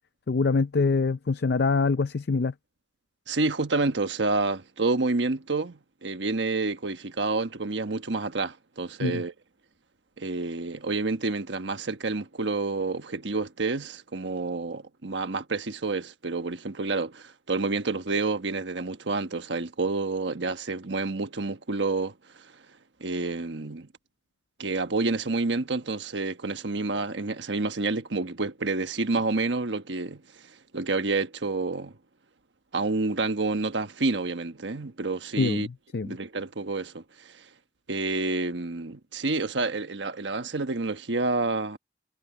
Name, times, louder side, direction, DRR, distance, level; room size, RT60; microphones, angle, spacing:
voice 1, 0.3-2.5 9.0-9.2 35.4-36.2, left 4 dB, 60° left, 0.5 m, -25 dB
voice 2, 3.3-9.3 10.2-22.6 23.0-23.9 24.6-32.0 32.7-35.7 36.0-37.5 37.9-41.8, right 3 dB, 80° right, 1.2 m, -29 dB
head